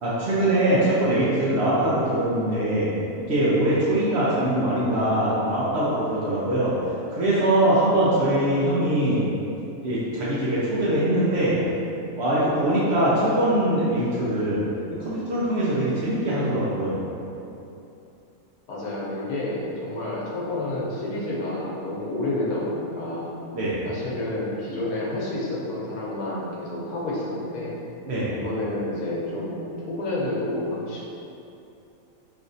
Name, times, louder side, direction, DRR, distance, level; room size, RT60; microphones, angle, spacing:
voice 1, 0.0-2.9 3.2-6.7 7.1-9.2 9.8-11.6 12.1-14.6 14.9-17.0 23.5-23.8 28.1-28.3, right 1 dB, 65° right, -9 dB, 0.7 m, -22 dB
voice 2, 18.7-23.3 23.8-27.8 28.3-31.1, left 1 dB, 85° left, -5 dB, 1.2 m, -29 dB
3.4 x 2.5 x 2.5 m, 2.8 s
omnidirectional pair, 1.6 m